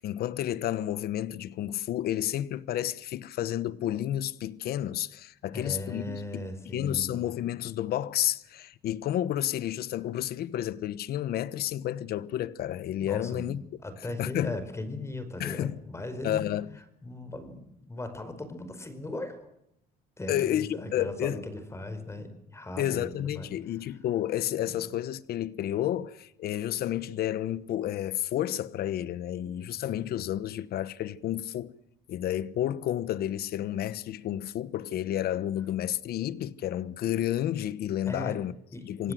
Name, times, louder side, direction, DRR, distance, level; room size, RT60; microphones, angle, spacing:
voice 1, 0.0-6.4 6.7-13.6 14.2-14.5 15.4-15.7 16.2-16.7 20.3-21.4 22.8-31.7 32.1-38.5 38.8-39.1, left 12 dB, 65° left, 1.2 m, -31 dB
voice 2, 5.5-7.1 13.0-16.5 17.0-19.5 20.2-23.5 24.6-24.8 38.1-38.4 38.7-39.1, left 2 dB, 15° left, 5.1 m, -38 dB
27.0 x 17.5 x 7.7 m
cardioid pair, 110°, 17 cm